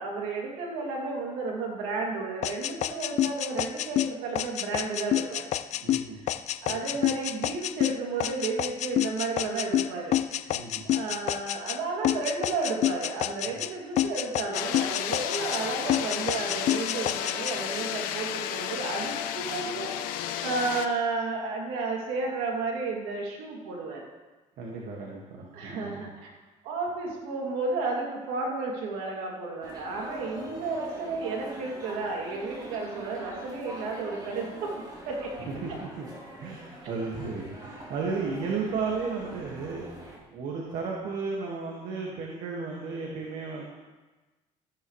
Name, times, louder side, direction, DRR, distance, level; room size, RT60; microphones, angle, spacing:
voice 1, 0.0-5.5 6.2-6.3 6.6-24.0 25.5-26.3 26.6-35.3, right 3 dB, 90° right, -1 dB, 2.9 m, -32 dB
sound 1, 2.4-11.8 12.0-13.7 14.0-15.6 15.9-17.6, left 12 dB, 55° left, 0.5 m, -28 dB
voice 2, 5.8-6.2 6.7-6.8 10.5-10.9 24.6-26.1 35.5-36.1 36.4-39.9 40.3-43.6, right 4 dB, 75° right, -2 dB, 2.0 m, -34 dB
sound 2, 14.5-20.9, left 10 dB, 85° left, 0.9 m, -33 dB
sound 3, 29.6-40.2, right 1 dB, 30° right, 3.7 m, -44 dB
14.0 x 12.0 x 3.3 m, 1.2 s
cardioid pair, 105°, 14 cm